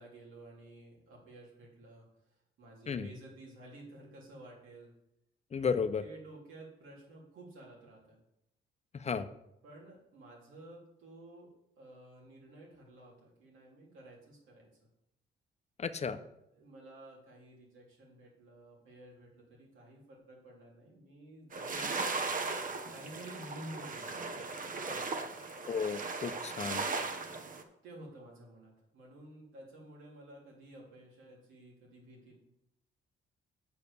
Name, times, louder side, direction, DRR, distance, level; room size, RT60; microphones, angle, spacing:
voice 1, 0.0-4.9 6.0-8.2 9.6-14.9 16.5-22.6 22.9-24.2 24.6-25.2 27.8-32.4, right 1 dB, 85° right, -3 dB, 3.2 m, -52 dB
voice 2, 5.5-6.0 8.9-9.3 15.8-16.2 21.8-21.9 25.7-26.8, left 6 dB, 35° left, 11 dB, 0.7 m, -33 dB
sound 1, 21.5-27.6, right 4 dB, 45° right, 1.0 m, -37 dB
7.0 x 5.1 x 6.8 m, 0.85 s
cardioid pair, 90°, 20 cm